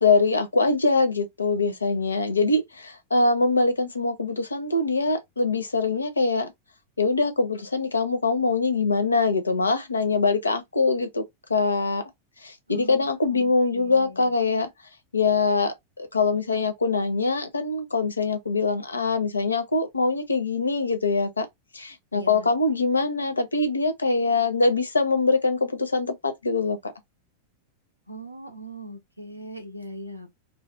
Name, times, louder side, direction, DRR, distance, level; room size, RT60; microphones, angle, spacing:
voice 1, 0.0-6.5 7.0-11.2 11.5-12.0 12.4-14.7 15.1-21.5 21.7-26.9, left 3 dB, 75° left, 0.5 m, -23 dB
voice 2, 12.7-14.4 22.1-22.5 28.1-30.3, right 1 dB, 85° right, 0.6 m, -40 dB
2.3 x 2.2 x 2.5 m
figure-of-eight pair, 90°, 0 cm